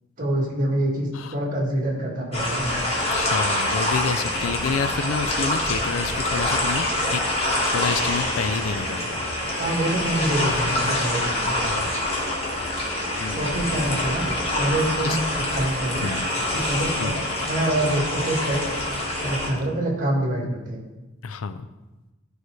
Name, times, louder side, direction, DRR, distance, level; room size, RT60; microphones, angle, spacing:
voice 1, 0.2-2.8 9.6-11.6 13.3-14.3 14.6-16.1 16.5-17.1 17.4-18.8 19.2-20.8, right 1 dB, 40° right, -3 dB, 2.0 m, -26 dB
sound 1, 2.3-19.5, left 1 dB, 30° left, 1.4 m, -25 dB
voice 2, 3.1-7.2 7.7-9.2 11.6-11.9 13.2-13.6 15.0-15.2 16.0-16.2 17.0-17.2 21.2-21.6, left 5 dB, 80° left, 11 dB, 0.5 m, -29 dB
11.5 x 4.8 x 3.2 m, 1.1 s
head